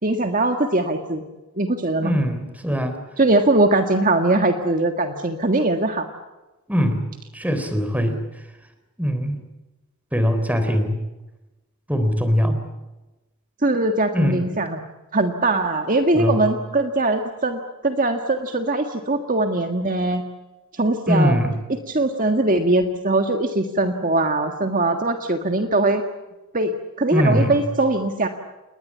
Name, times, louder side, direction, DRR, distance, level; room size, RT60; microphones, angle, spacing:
voice 1, 0.0-1.2 1.6-2.1 3.2-6.1 13.6-14.8 15.1-20.2 20.7-21.3 21.9-26.0 26.5-26.7 27.0-28.3, right 2 dB, 35° right, 5 dB, 1.7 m, -21 dB
voice 2, 2.0-3.0 6.7-7.0 7.3-8.2 9.0-9.4 10.1-11.0 11.9-12.6 14.1-14.4 16.1-16.5 21.1-21.5 27.1-27.6, equal, 5° right, 8 dB, 3.7 m, -21 dB
29.0 x 21.0 x 8.7 m, 1.1 s
head